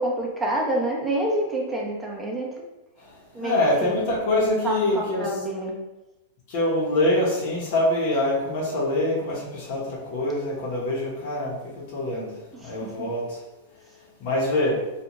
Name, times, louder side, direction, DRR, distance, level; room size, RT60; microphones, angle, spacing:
voice 1, 0.0-2.5 3.3-4.0 4.6-5.8 12.5-13.1, right 1 dB, 10° right, -3 dB, 0.7 m, -28 dB
voice 2, 3.4-5.3 6.5-11.6 11.9-12.3 12.6-13.4 14.2-14.8, left 1 dB, 55° left, -5 dB, 1.0 m, -24 dB
2.4 x 2.4 x 3.0 m, 0.99 s
hypercardioid pair, 115°, 0 cm